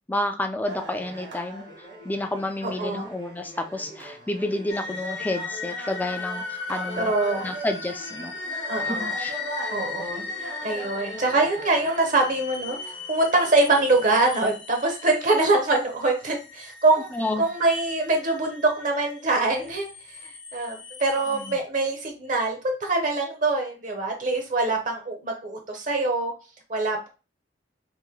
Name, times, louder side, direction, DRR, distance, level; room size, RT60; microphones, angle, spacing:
voice 1, 0.1-1.7 2.0-7.1 7.4-8.3 8.9-9.4 17.1-17.4 21.3-21.6, left 1 dB, 10° left, 5 dB, 0.3 m, -30 dB
sound 1, 0.7-14.5, right 2 dB, 75° right, 1.5 m, -40 dB
voice 2, 2.6-3.1 7.0-7.5 8.7-9.1 9.7-17.1 17.4-19.9 20.2-26.3 26.7-27.1, right 2 dB, 45° right, 3 dB, 0.7 m, -24 dB
sound 2, 4.7-21.5, left 4 dB, 65° left, 0.6 m, -37 dB
3.0 x 2.6 x 3.7 m, 0.32 s
head